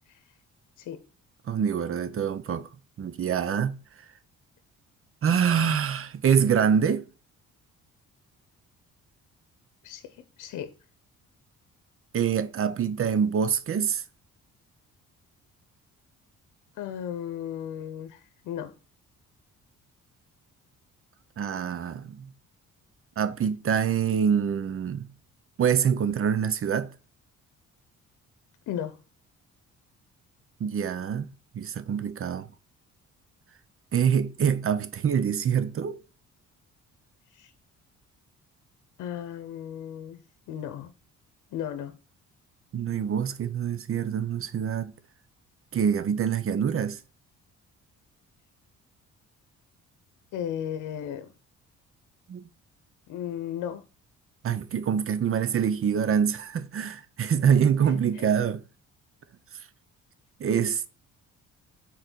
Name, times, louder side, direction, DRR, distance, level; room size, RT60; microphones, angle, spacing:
voice 1, 1.5-2.7 3.0-3.8 5.2-7.1 12.1-14.0 21.4-22.3 23.2-25.1 25.6-26.9 30.6-32.5 33.9-36.0 42.7-44.9 45.7-47.0 52.3-52.5 54.4-58.6 60.4-60.9, right 7 dB, 45° right, 0.8 m, -25 dB
voice 2, 9.8-10.7 16.7-18.7 28.7-29.0 37.3-37.5 39.0-40.2 40.5-40.9 41.5-41.9 50.3-51.3 53.1-53.8 57.8-58.3, left 10 dB, 85° left, 0.8 m, -35 dB
6.7 x 4.3 x 6.1 m
cardioid pair, 90°, 30 cm